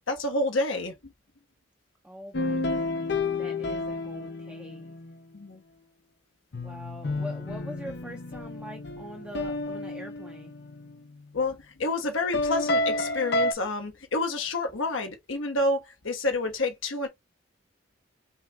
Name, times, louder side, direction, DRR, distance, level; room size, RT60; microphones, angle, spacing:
voice 1, 0.1-1.1 5.3-5.6 7.2-7.3 11.3-17.1, left 2 dB, 75° left, 1.1 m, -29 dB
voice 2, 2.0-3.1 3.4-4.9 6.5-10.5, equal, 5° right, 0.7 m, -43 dB
sound 1, 2.3-5.2 6.5-11.1 12.3-13.5, left 2 dB, 55° left, 0.7 m, -30 dB
5.6 x 2.2 x 3.6 m
head